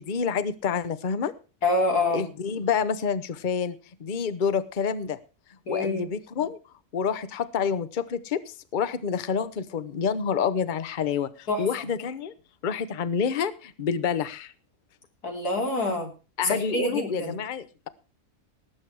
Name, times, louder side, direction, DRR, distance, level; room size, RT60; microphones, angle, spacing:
voice 1, 0.0-1.3 2.1-5.2 5.7-6.6 6.9-12.3 12.6-14.5 16.4-17.9, left 6 dB, 40° left, 14 dB, 0.8 m, -28 dB
voice 2, 1.6-2.2 5.7-6.1 11.5-11.7 15.2-16.1 16.4-17.4, left 2 dB, 80° left, 3 dB, 3.8 m, -26 dB
18.5 x 7.8 x 4.7 m, 0.34 s
omnidirectional pair, 1.6 m